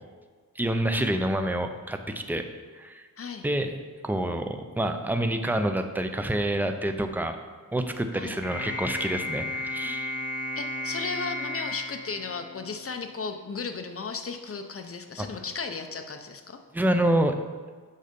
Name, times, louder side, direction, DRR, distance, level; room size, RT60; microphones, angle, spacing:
voice 1, 0.6-2.4 2.7-3.0 3.4-7.4 7.7-10.1 15.2-15.3 16.7-17.3, right 1 dB, 5° right, 7 dB, 0.4 m, -27 dB
sound 1, 8.4-12.9, left 2 dB, 25° left, 1.0 m, -34 dB
voice 2, 10.6-16.6, left 4 dB, 40° left, 6 dB, 0.6 m, -35 dB
6.5 x 5.5 x 5.1 m, 1.5 s
wide cardioid pair, 130°, 35 cm